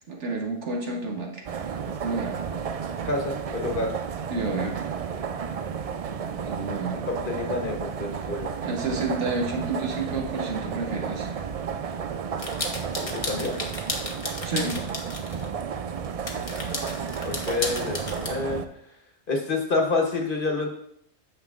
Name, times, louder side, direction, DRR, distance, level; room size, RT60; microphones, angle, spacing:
voice 1, 0.1-1.6 2.0-2.4 4.3-4.8 6.5-7.0 8.6-11.3 14.4-14.8, right 3 dB, 90° right, 1 dB, 1.5 m, -30 dB
sound 1, 1.4-18.6, right 7 dB, 70° right, 0.3 m, -32 dB
voice 2, 3.0-3.9 7.1-8.5 13.0-13.5 17.2-18.6 19.3-20.7, left 3 dB, 50° left, 2 dB, 1.4 m, -28 dB
sound 2, 12.4-15.4 16.0-18.3, left 2 dB, 30° left, 1.0 m, -34 dB
9.5 x 6.7 x 2.5 m, 0.70 s
omnidirectional pair, 1.2 m